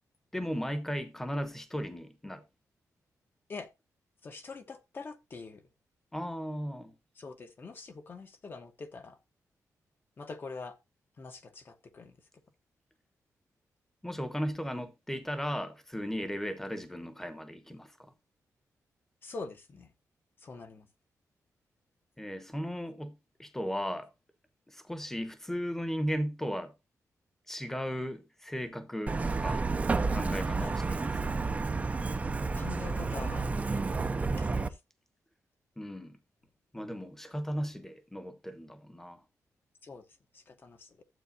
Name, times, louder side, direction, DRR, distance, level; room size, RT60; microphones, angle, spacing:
voice 1, 0.3-2.4 6.1-7.0 14.0-17.9 22.2-23.1 23.4-24.1 24.7-26.7 27.5-29.7 30.1-31.4 35.8-36.2 36.7-39.2, equal, 5° left, 1.0 m, -36 dB
voice 2, 4.2-5.6 7.2-9.2 10.2-10.8 11.2-12.1 19.2-19.9 20.4-20.9 30.6-30.8 32.5-34.8 39.8-40.0 40.3-41.0, left 4 dB, 35° left, 1.0 m, -44 dB
Truck, 29.1-34.7, right 3 dB, 25° right, 0.5 m, -30 dB
12.0 x 8.1 x 2.7 m
wide cardioid pair, 165°, 6 cm